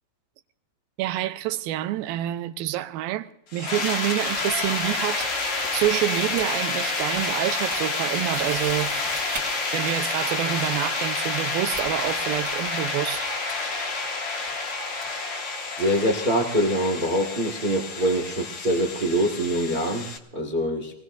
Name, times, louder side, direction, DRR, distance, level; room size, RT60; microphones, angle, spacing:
voice 1, 1.0-9.0 9.7-13.3, right 14 dB, 85° right, 2.5 m, -27 dB
sound 1, 3.5-20.2, left 3 dB, 55° left, 1.7 m, -29 dB
sound 2, 4.2-9.5 10.7-11.0 11.7-16.0, right 3 dB, 30° right, 2.3 m, -43 dB
voice 2, 15.8-20.9, equal, 60° right, 0.5 m, -24 dB
24.5 x 19.5 x 2.6 m
omnidirectional pair, 4.1 m